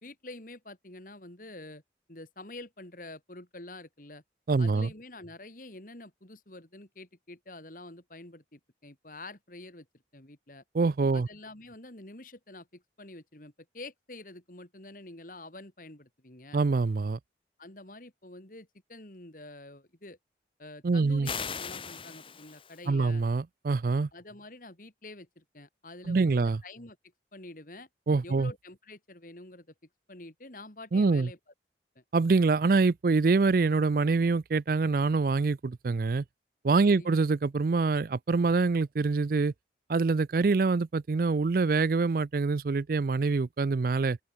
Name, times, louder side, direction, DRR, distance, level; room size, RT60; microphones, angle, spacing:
voice 1, 0.0-1.8 2.1-4.2 4.6-9.9 10.1-10.6 11.1-16.6 17.6-20.2 20.6-23.2 24.1-27.0 27.3-27.9 28.2-29.7 30.1-31.4 31.9-32.0 36.8-37.1, left 2 dB, 50° left, 2.8 m, -47 dB
voice 2, 4.5-4.9 10.7-11.3 16.5-17.2 20.8-21.3 22.9-24.1 26.1-26.6 28.1-28.5 30.9-31.3 32.1-36.2 36.6-39.5 39.9-44.2, right 4 dB, 50° right, 0.4 m, -25 dB
sound 1, 21.2-22.8, left 6 dB, 30° left, 2.0 m, -38 dB
open air
head